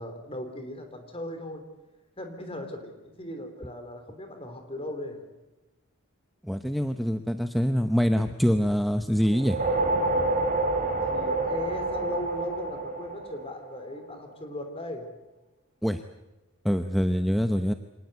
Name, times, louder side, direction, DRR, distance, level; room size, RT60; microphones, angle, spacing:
voice 1, 0.0-1.6 2.2-5.3 11.1-15.1, left 1 dB, 25° left, 6 dB, 3.6 m, -38 dB
voice 2, 6.4-9.6 15.8-16.0 16.6-17.7, equal, ahead, 8 dB, 0.7 m, -25 dB
sound 1, 9.3-13.9, right 2 dB, 40° right, 3.8 m, -28 dB
25.0 x 19.0 x 8.1 m, 1.1 s
head